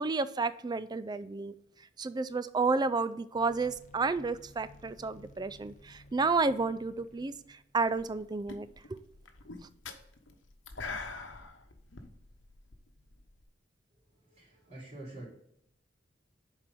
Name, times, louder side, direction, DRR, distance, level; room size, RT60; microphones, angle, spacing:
voice 1, 0.0-1.5 2.0-9.0, right 4 dB, 20° right, 14 dB, 0.3 m, -31 dB
sound 1, 3.3-8.5, left 1 dB, 40° left, 0.6 m, -56 dB
sound 2, 7.8-8.2 8.5-13.4, left 4 dB, 80° left, 1.0 m, -44 dB
voice 2, 14.1-15.3, right 1 dB, 40° right, -9 dB, 3.2 m, -47 dB
7.2 x 4.5 x 5.3 m, 0.76 s
head